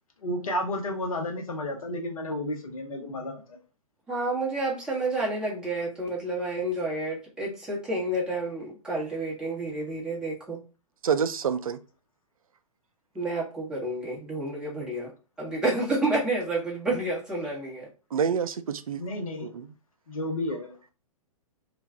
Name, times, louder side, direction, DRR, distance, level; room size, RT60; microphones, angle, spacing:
voice 1, 0.2-3.6 19.0-19.6 20.1-20.8, left 1 dB, 70° left, 0.9 m, -32 dB
voice 2, 4.1-10.6 13.1-15.1 15.4-17.9, right 2 dB, 5° right, 0.9 m, -29 dB
voice 3, 11.0-11.8 18.1-19.0 19.4-19.7, right 7 dB, 70° right, 0.4 m, -27 dB
2.6 x 2.2 x 3.3 m
figure-of-eight pair, 115°, 19 cm